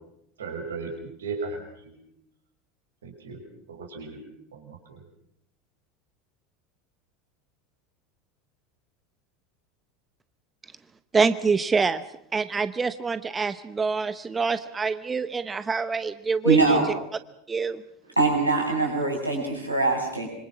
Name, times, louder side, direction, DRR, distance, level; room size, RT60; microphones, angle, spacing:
voice 1, 0.4-2.0 3.0-3.4 3.7-4.2 4.5-5.0, right 4 dB, 70° right, 2 dB, 5.8 m, -36 dB
voice 2, 11.1-12.0 12.3-16.8 17.5-17.8, right 4 dB, 20° right, 13 dB, 1.0 m, -26 dB
voice 3, 16.4-16.9 18.2-20.3, right 3 dB, 90° right, 0 dB, 7.3 m, -22 dB
26.5 x 25.0 x 6.1 m, 0.74 s
figure-of-eight pair, 80°, 0 cm